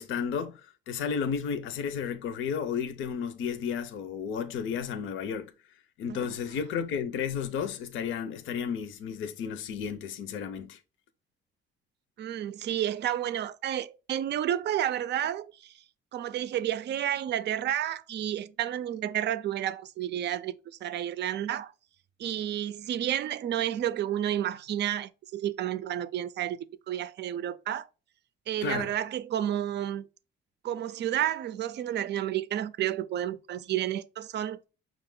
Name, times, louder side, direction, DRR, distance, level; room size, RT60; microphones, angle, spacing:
voice 1, 0.0-5.5 6.0-10.8 28.6-28.9, left 7 dB, 80° left, 0.6 m, -33 dB
voice 2, 12.2-15.7 16.1-21.7 22.2-26.6 26.9-27.9 28.5-30.1 30.6-34.6, right 11 dB, 60° right, 0.4 m, -31 dB
5.9 x 2.4 x 3.7 m
cardioid pair, 90°, 20 cm